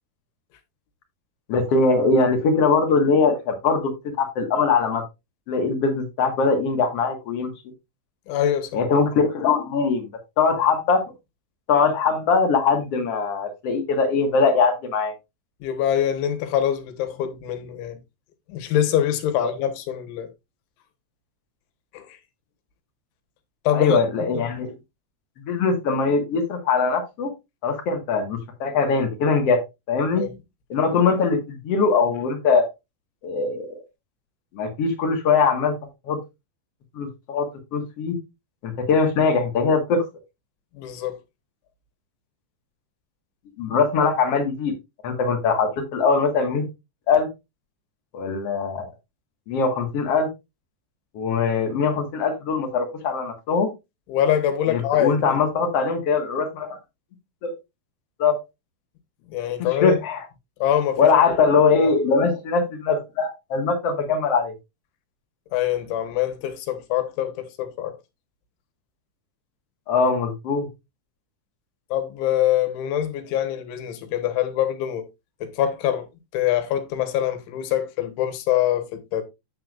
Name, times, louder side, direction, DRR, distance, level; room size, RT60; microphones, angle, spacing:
voice 1, 1.5-3.9 4.2-5.0 5.5-7.5 8.7-10.1 10.4-11.0 11.7-15.1 19.4-19.5 23.7-24.7 25.4-27.3 27.6-29.6 29.9-30.2 30.7-32.7 33.2-33.8 34.5-35.7 36.1-36.2 36.9-37.5 37.7-38.1 38.6-40.0 43.6-44.7 45.0-46.6 47.1-47.3 48.1-48.9 49.5-50.3 51.1-53.7 54.7-56.8 57.4-57.5 58.2-58.4 59.8-60.2 61.0-64.5 69.9-70.7, left 4 dB, 60° left, 1.6 m, -21 dB
voice 2, 8.3-8.8 15.6-18.0 18.5-20.3 21.9-22.2 23.7-24.0 24.3-24.4 30.2-30.4 40.8-41.2 54.1-55.4 59.3-60.0 60.6-61.1 65.5-68.0 71.9-75.1 75.4-76.1 76.3-79.2, left 11 dB, 80° left, 3.7 m, -24 dB
10.0 x 7.8 x 2.5 m
omnidirectional pair, 5.4 m